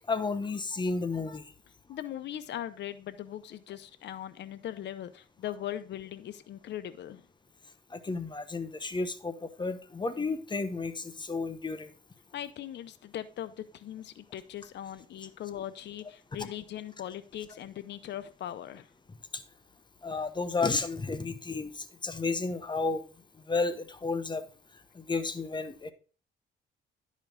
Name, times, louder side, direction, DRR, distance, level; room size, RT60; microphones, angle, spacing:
voice 1, 0.1-1.5 7.9-11.9 16.4-16.5 19.3-19.4 20.0-23.0 23.5-24.4 24.9-25.9, left 3 dB, 25° left, 11 dB, 1.0 m, -32 dB
voice 2, 1.9-7.3 12.3-18.9, left 11 dB, 60° left, 13 dB, 0.6 m, -40 dB
10.5 x 5.2 x 3.8 m, 0.37 s
cardioid pair, 90°, 20 cm